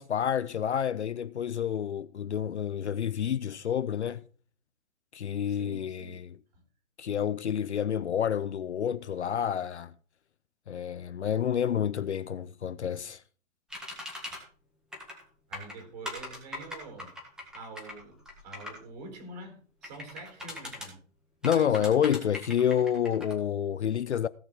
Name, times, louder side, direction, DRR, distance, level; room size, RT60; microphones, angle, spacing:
voice 1, 0.0-4.2 5.1-6.4 7.0-9.9 10.7-13.2 21.4-24.3, left 9 dB, 55° left, 0.6 m, -29 dB
voice 2, 5.5-6.2 6.5-6.6 15.5-17.1 17.5-18.2 18.4-21.0 21.5-21.9, right 3 dB, 30° right, 3.8 m, -45 dB
Keyboard Typing Sounds, 13.7-14.4 14.9-15.2 15.5-18.8 19.8-20.9 21.4-23.3, left 1 dB, ahead, 1.6 m, -40 dB
16.5 x 5.9 x 6.0 m
hypercardioid pair, 165°, 40 cm